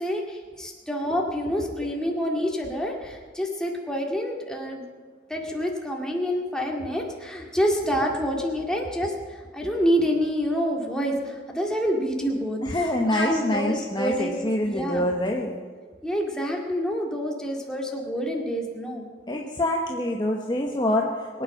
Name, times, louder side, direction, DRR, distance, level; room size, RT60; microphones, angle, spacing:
voice 1, 0.0-4.8 5.3-12.6 13.1-15.1 16.0-19.1, equal, 5° left, -1 dB, 2.1 m, -27 dB
voice 2, 12.6-15.6 19.3-21.4, left 1 dB, 25° left, 0 dB, 1.1 m, -26 dB
22.5 x 9.2 x 6.5 m, 1.5 s
head